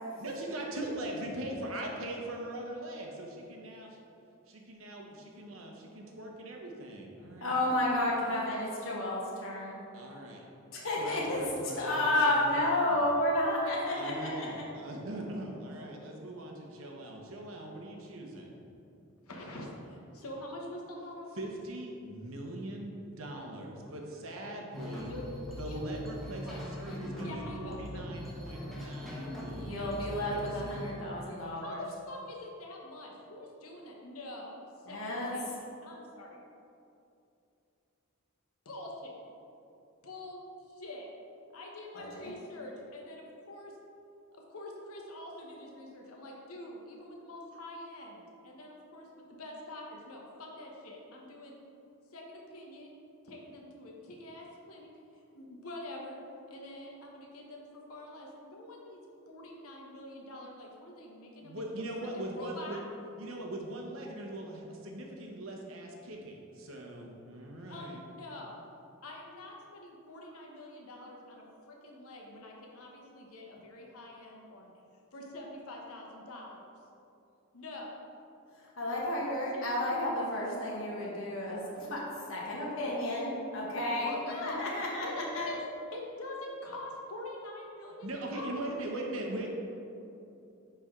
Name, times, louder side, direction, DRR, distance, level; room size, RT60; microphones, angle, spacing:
voice 1, 0.2-3.9 4.5-7.6 9.9-10.4 11.0-12.7 13.9-18.6 21.3-25.1 25.6-30.7 61.4-62.8 63.2-68.0 88.0-89.5, right 1 dB, 70° right, 0 dB, 1.0 m, -41 dB
voice 2, 7.4-9.8 10.7-11.4 11.8-14.6 29.5-31.8 34.9-35.3 41.9-42.3 78.8-84.1 84.4-85.5, left 1 dB, 65° left, -4 dB, 1.3 m, -31 dB
voice 3, 19.3-21.6 25.1-25.3 25.6-25.8 26.3-26.6 27.2-28.0 31.6-34.6 34.9-36.4 38.6-39.2 40.0-40.4 40.7-41.1 41.5-43.7 44.3-51.6 52.1-52.9 53.2-54.9 55.1-56.2 56.5-59.0 59.3-61.8 62.1-62.8 67.7-68.6 69.0-74.7 75.1-76.6 77.5-77.9 79.5-79.9 84.0-84.7 85.0-85.6 85.9-88.7, left 1 dB, 90° left, -1 dB, 1.1 m, -45 dB
sound 1, 24.7-30.9, equal, ahead, 0.9 m, -41 dB
9.8 x 3.4 x 3.7 m, 2.7 s
head